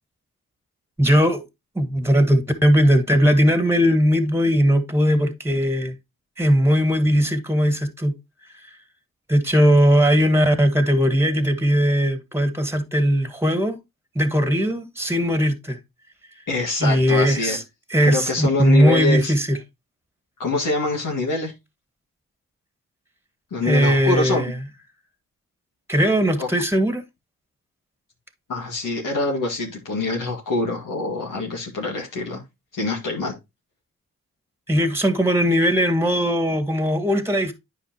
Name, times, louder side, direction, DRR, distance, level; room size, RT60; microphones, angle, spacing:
voice 1, 1.0-1.4 1.8-6.0 6.4-8.2 9.3-13.8 14.2-15.8 16.8-17.6 17.9-19.6 23.6-24.6 25.9-27.0 34.7-37.5, equal, 5° right, 1.7 m, -19 dB
voice 2, 16.5-17.6 18.0-19.3 20.4-21.5 23.5-24.4 26.4-26.5 28.5-32.4 32.7-33.3, left 2 dB, 70° left, 2.0 m, -25 dB
9.5 x 4.9 x 2.9 m
supercardioid pair, 40°, 34 cm